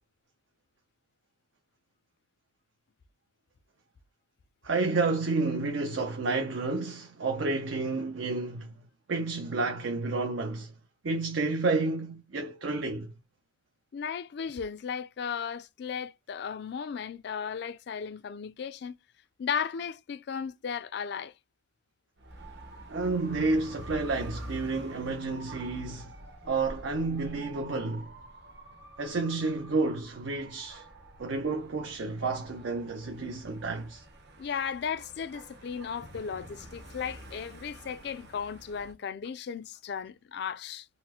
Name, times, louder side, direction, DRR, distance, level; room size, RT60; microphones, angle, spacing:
voice 1, 4.6-8.7 9.1-10.7 11.0-13.1 22.9-26.1 26.4-28.1 29.0-30.8 31.2-34.0, right 3 dB, 85° right, 0.6 m, -30 dB
voice 2, 13.9-18.9 19.4-21.3 34.4-40.9, left 7 dB, 60° left, 0.4 m, -35 dB
Dog / Motorcycle, 22.2-38.9, right 1 dB, 60° right, 1.0 m, -47 dB
4.0 x 2.0 x 2.8 m
head